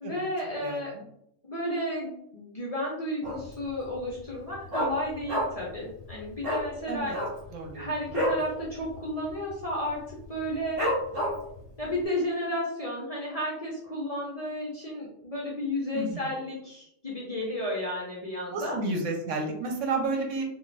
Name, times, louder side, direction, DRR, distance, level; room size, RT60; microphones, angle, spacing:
voice 1, 0.0-0.9 1.5-7.1 7.7-10.8 11.8-18.8, left 1 dB, 40° left, -5 dB, 0.5 m, -32 dB
voice 2, 0.6-1.0 6.9-7.2 7.5-7.9 15.9-16.2 18.5-20.4, right 3 dB, 75° right, 2 dB, 1.0 m, -31 dB
Dog, 3.2-3.7 3.9-4.0 4.3-5.7 6.0-6.1 6.4-6.7 7.0-8.5 8.8-9.0 9.2-9.6 10.1-10.2 10.8-11.6 12.0-12.1, equal, 50° right, 1.3 m, -29 dB
2.4 x 2.4 x 3.2 m, 0.75 s
omnidirectional pair, 1.3 m